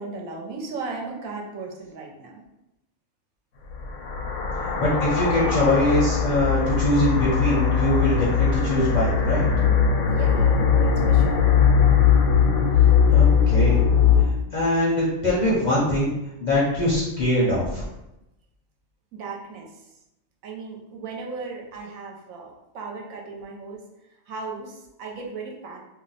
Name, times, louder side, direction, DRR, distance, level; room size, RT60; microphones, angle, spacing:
voice 1, 0.0-2.4 10.1-11.5 19.1-19.7 20.4-23.8 24.3-25.8, right 4 dB, 75° right, 0 dB, 1.0 m, -36 dB
sound 1, 3.7-14.2, left 7 dB, 80° left, 1.1 m, -20 dB
voice 2, 4.8-9.5 13.1-13.8 14.5-16.1 16.4-17.8, left 1 dB, 45° left, -7 dB, 0.6 m, -22 dB
2.6 x 2.1 x 3.9 m, 0.90 s
omnidirectional pair, 1.5 m